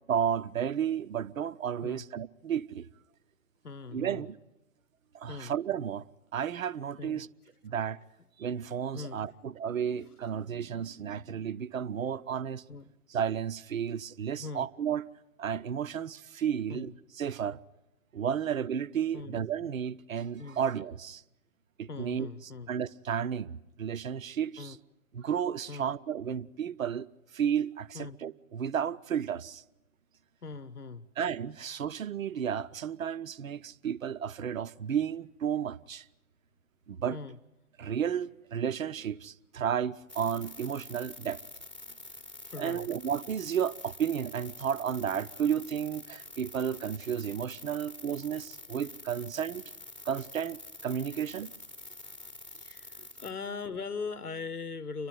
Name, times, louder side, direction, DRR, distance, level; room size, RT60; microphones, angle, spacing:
voice 1, 0.1-2.9 3.9-4.4 5.1-6.1 6.3-7.3 7.6-8.0 8.4-12.6 13.1-15.0 15.4-16.9 17.2-17.6 18.1-21.2 21.8-24.8 25.1-27.1 27.3-29.6 31.2-36.0 36.9-37.2 37.8-41.4 42.6-49.6 50.0-51.5, right 8 dB, 65° right, 0.8 m, -32 dB
voice 2, 3.6-4.3 5.3-5.5 7.0-7.2 8.9-9.2 12.7-12.9 14.4-14.7 16.7-16.9 19.1-19.4 20.4-20.6 21.9-22.7 24.6-24.8 25.7-25.9 27.9-28.2 30.4-31.1 37.1-37.4 42.5-42.9 47.7-47.8 48.3-48.4 52.6-55.1, left 4 dB, 85° left, 1.0 m, -40 dB
sound 1, 40.1-53.3, left 2 dB, 5° left, 1.0 m, -47 dB
30.0 x 12.0 x 9.2 m
figure-of-eight pair, 130°, 44 cm